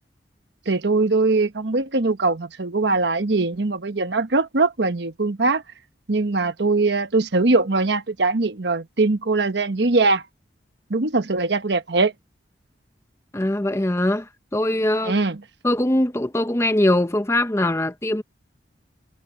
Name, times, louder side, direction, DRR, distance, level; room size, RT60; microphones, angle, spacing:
voice 1, 0.7-5.6 6.1-10.2 10.9-12.1 15.0-15.4, right 3 dB, 65° right, 1.1 m, -21 dB
voice 2, 13.3-15.2 15.6-18.2, left 1 dB, 15° left, 0.7 m, -22 dB
head